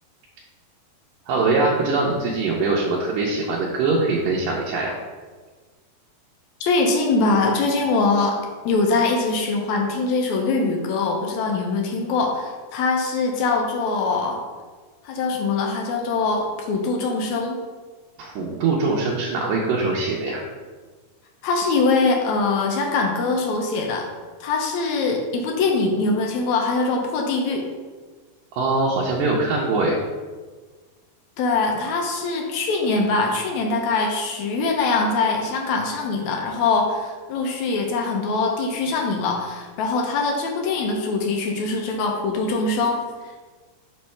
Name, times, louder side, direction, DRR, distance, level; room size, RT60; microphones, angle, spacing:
voice 1, 1.3-4.9 18.2-20.4 28.5-30.0, right 3 dB, 80° right, -3 dB, 2.4 m, -22 dB
voice 2, 6.6-8.4 8.7-14.4 15.0-17.6 21.4-24.1 24.4-27.6 31.4-43.0, left 3 dB, 75° left, 1 dB, 1.8 m, -23 dB
6.1 x 3.2 x 5.7 m, 1.4 s
omnidirectional pair, 3.8 m